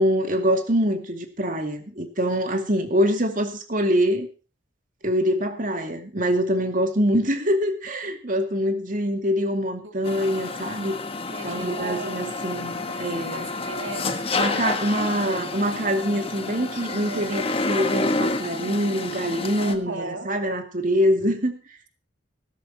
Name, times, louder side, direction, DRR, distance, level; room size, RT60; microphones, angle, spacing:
voice 1, 0.0-4.3 5.0-10.9 11.4-13.5 14.4-21.6, equal, 45° right, 2.4 m, -24 dB
sound 1, 10.0-19.7, left 3 dB, 30° left, 1.4 m, -29 dB
voice 2, 11.3-12.3 12.9-14.3 15.0-15.5 17.1-17.4 19.6-20.3, right 3 dB, 90° right, 2.0 m, -36 dB
16.0 x 13.5 x 2.9 m
head